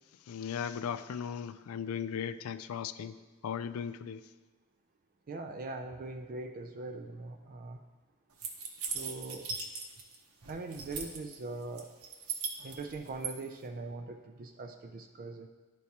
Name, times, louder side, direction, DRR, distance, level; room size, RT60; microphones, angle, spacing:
voice 1, 0.3-3.2 3.4-4.3, left 7 dB, 70° left, 13 dB, 0.3 m, -37 dB
voice 2, 5.3-7.8 8.7-9.5 10.5-11.9 12.6-15.5, right 3 dB, 40° right, 5 dB, 0.4 m, -41 dB
sound 1, 8.4-10.2 10.4-11.4 11.8-13.3, right 6 dB, 70° right, 0.8 m, -38 dB
11.5 x 4.6 x 2.8 m, 1.3 s
head